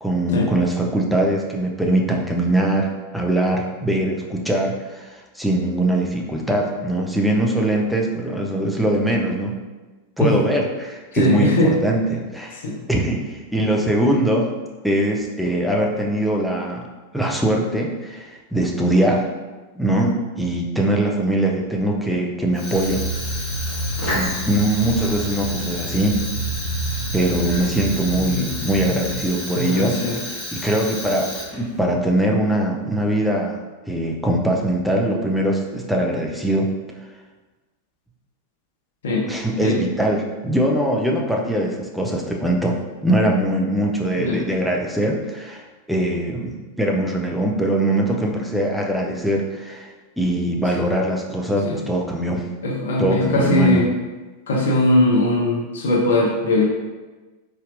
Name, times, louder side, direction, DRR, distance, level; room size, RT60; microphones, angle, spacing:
voice 1, 0.0-9.5 10.2-12.6 12.9-14.5 14.8-16.9 17.1-19.3 19.7-23.0 24.1-26.2 27.1-33.6 33.9-36.7 39.3-42.8 43.0-49.9 50.2-52.4 53.0-53.8, right 1 dB, ahead, -1 dB, 0.6 m, -22 dB
voice 2, 11.1-11.7 12.6-12.8 29.5-30.1 39.0-39.2 39.6-39.8 44.2-44.4 51.6-51.8 52.6-53.8 54.5-56.6, left 2 dB, 60° left, 0 dB, 0.8 m, -19 dB
Fire, 22.5-31.8, left 1 dB, 30° left, 1.4 m, -31 dB
sound 1, 22.7-29.2, right 1 dB, 90° right, 0.5 m, -29 dB
4.2 x 3.2 x 2.5 m, 1.2 s
figure-of-eight pair, 90°, 0 cm